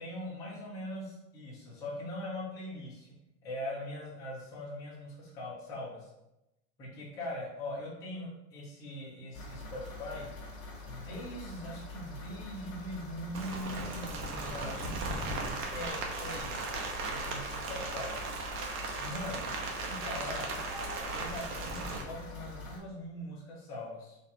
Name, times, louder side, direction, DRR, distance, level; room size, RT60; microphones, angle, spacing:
voice 1, 0.0-3.1 3.4-6.1 6.8-10.3 10.8-16.5 17.1-18.2 19.0-19.6 19.8-20.6 21.1-24.2, left 1 dB, 10° left, -7 dB, 0.4 m, -41 dB
sound 1, 9.3-22.8, left 2 dB, 25° left, 1.1 m, -45 dB
Rain, 13.3-22.0, right 3 dB, 75° right, 1.0 m, -37 dB
4.1 x 2.5 x 4.1 m, 0.91 s
supercardioid pair, 175°, 42 cm